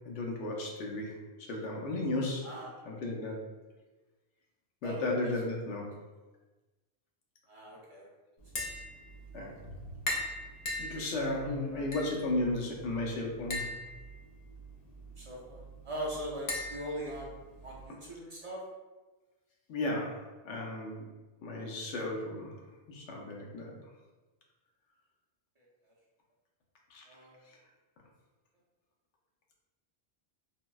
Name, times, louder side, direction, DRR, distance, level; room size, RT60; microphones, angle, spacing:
voice 1, 0.0-1.1 1.5-2.4 2.8-3.4 4.8-5.9 9.3-9.5 10.8-13.7 19.7-20.2 20.4-21.0 21.4-22.6 22.9-23.7 26.9-27.0, left 2 dB, 90° left, -1 dB, 1.0 m, -34 dB
voice 2, 2.4-2.7 4.8-5.1 7.5-8.1 11.7-11.9 15.2-17.3 17.6-18.6 25.6-25.7 27.1-27.4, right 1 dB, 45° right, -5 dB, 0.4 m, -40 dB
Tap, 8.4-17.9, left 1 dB, 50° left, 0.5 m, -41 dB
3.9 x 2.0 x 2.2 m, 1.2 s
omnidirectional pair, 1.2 m